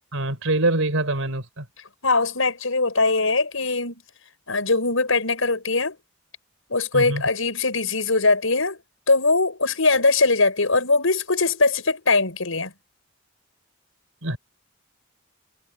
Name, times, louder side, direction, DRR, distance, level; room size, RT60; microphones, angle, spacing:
voice 1, 0.1-1.7 6.9-7.2 14.2-14.4, right 2 dB, 80° right, 4.8 m, -24 dB
voice 2, 2.0-4.0 4.5-6.0 6.7-8.8 9.1-12.7, left 3 dB, 80° left, 5.5 m, -21 dB
head